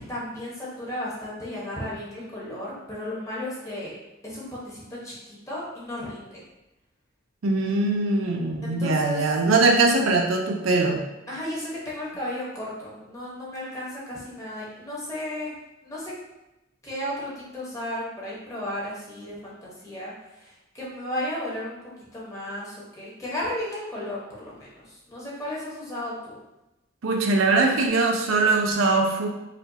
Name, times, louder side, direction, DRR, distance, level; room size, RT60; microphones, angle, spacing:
voice 1, 0.0-3.9 4.2-6.4 8.6-9.2 11.3-15.5 15.8-16.1 16.8-21.8 22.1-26.4, left 1 dB, 15° left, -7 dB, 1.1 m, -34 dB
voice 2, 7.4-11.0 27.0-29.3, right 3 dB, 85° right, 2 dB, 0.5 m, -21 dB
4.9 x 2.4 x 2.8 m, 0.97 s
head